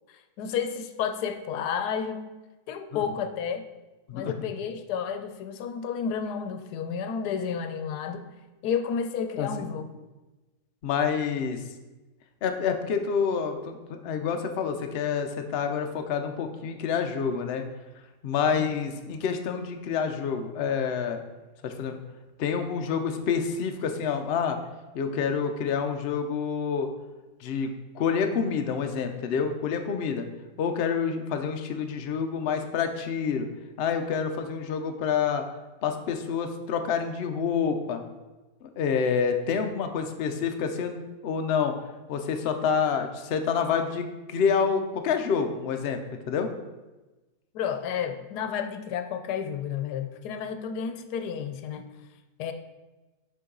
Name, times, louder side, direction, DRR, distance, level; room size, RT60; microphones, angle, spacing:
voice 1, 0.4-2.2 2.7-3.6 4.1-8.3 8.6-10.0 18.5-18.7 47.5-51.9 52.4-52.5, left 7 dB, 90° left, 8 dB, 1.2 m, -31 dB
voice 2, 10.8-11.6 12.4-17.6 18.2-21.2 21.6-22.0 22.4-24.6 24.9-26.9 27.4-30.3 30.6-33.5 33.8-35.4 35.8-38.0 38.6-41.7 42.1-46.0 46.3-46.5, left 6 dB, 60° left, 6 dB, 0.7 m, -28 dB
6.8 x 5.3 x 3.7 m, 1.1 s
omnidirectional pair, 1.7 m